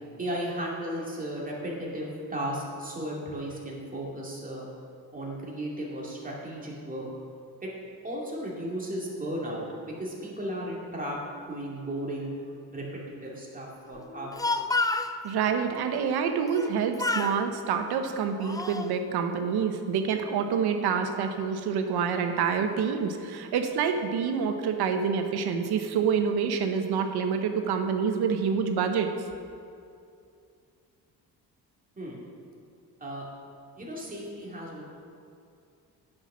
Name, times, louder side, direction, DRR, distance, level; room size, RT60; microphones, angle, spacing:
voice 1, 0.2-4.7 5.1-7.1 7.6-7.7 8.0-11.2 11.5-12.3 12.7-14.7 32.0-32.2 33.0-33.3 33.8-34.8, right 1 dB, 20° right, -4 dB, 2.4 m, -35 dB
Speech, 14.1-15.1 16.5-16.7 17.0-17.4 18.1-18.9, left 3 dB, 10° left, 0.3 m, -29 dB
voice 2, 15.2-29.1, right 6 dB, 90° right, 6 dB, 0.9 m, -27 dB
9.8 x 6.4 x 6.1 m, 2.5 s
cardioid pair, 105°, 38 cm